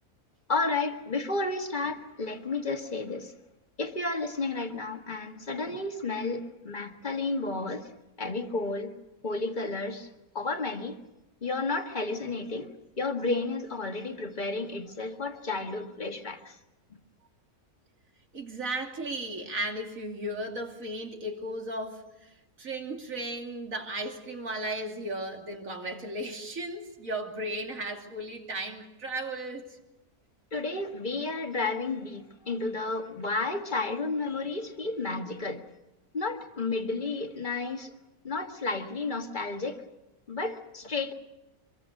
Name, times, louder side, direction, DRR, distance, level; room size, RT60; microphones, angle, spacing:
voice 1, 0.5-3.3 3.8-7.9 8.2-8.9 9.2-10.1 10.3-11.0 11.4-16.6 30.5-35.6 36.1-37.9 38.2-39.8 40.3-41.1, left 3 dB, 30° left, 1.9 m, -32 dB
voice 2, 18.3-29.8, right 1 dB, 60° right, 3.2 m, -35 dB
25.5 x 23.5 x 6.5 m
omnidirectional pair, 1.6 m